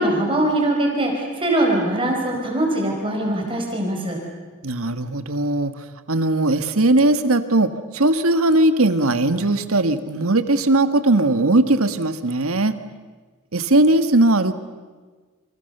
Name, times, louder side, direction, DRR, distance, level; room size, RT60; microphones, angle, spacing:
voice 1, 0.0-4.2, right 1 dB, 25° right, 1 dB, 4.8 m, -22 dB
voice 2, 4.6-5.7 6.1-12.7 13.5-14.5, right 2 dB, 70° right, 10 dB, 1.7 m, -19 dB
29.0 x 26.5 x 6.8 m, 1.4 s
head